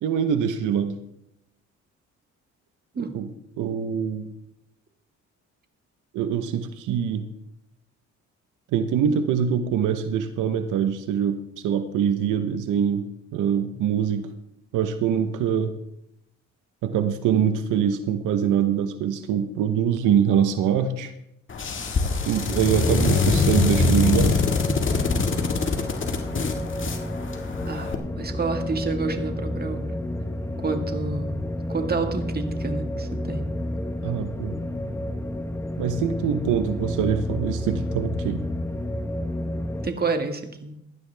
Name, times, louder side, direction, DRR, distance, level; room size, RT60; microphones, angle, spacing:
voice 1, 0.0-1.0 3.1-3.3 3.6-4.3 6.1-7.2 8.7-13.0 13.3-14.3 14.7-15.7 16.8-21.1 22.3-24.4 34.0-34.6 35.8-38.4, right 8 dB, 90° right, 9 dB, 1.0 m, -24 dB
sound 1, 21.5-27.9, left 4 dB, 40° left, 1.8 m, -24 dB
sound 2, 21.8-39.9, left 1 dB, 10° left, 0.9 m, -31 dB
voice 2, 27.7-29.9 30.6-31.3 31.7-33.4 39.8-40.7, right 4 dB, 30° right, 6 dB, 1.7 m, -29 dB
16.5 x 11.5 x 3.4 m, 0.80 s
cardioid pair, 90°, 30 cm